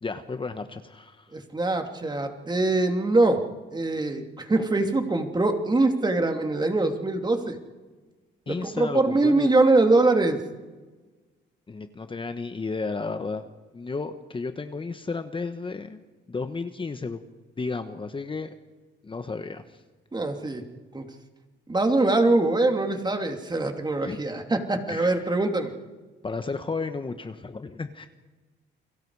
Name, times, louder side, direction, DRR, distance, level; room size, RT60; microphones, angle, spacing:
voice 1, 0.0-1.3 8.5-9.5 11.7-13.4 13.7-16.0 16.3-17.2 17.6-18.5 19.0-19.8 24.0-24.2 24.9-25.4 26.2-28.1, left 4 dB, 25° left, 8 dB, 1.3 m, -33 dB
voice 2, 1.3-3.4 3.7-7.6 8.5-10.4 20.1-20.6 20.9-21.0 21.7-25.7, right 2 dB, 20° right, 4 dB, 2.9 m, -23 dB
29.5 x 22.5 x 4.9 m, 1.3 s
cardioid pair, 90°, 20 cm